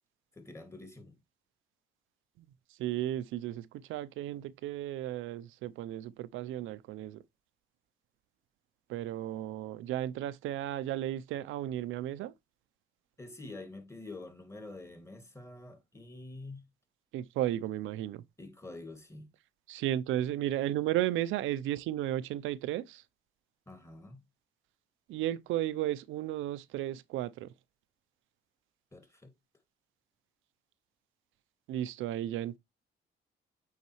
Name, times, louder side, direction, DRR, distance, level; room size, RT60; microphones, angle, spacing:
voice 1, 0.3-1.2 13.2-16.6 18.4-19.3 23.7-24.2 28.9-29.3, left 2 dB, 15° left, 2.1 m, -47 dB
voice 2, 2.4-7.2 8.9-12.3 17.1-18.2 19.7-23.0 25.1-27.5 31.7-32.6, right 13 dB, 90° right, 0.6 m, -34 dB
8.4 x 4.0 x 3.0 m
cardioid pair, 90°, 20 cm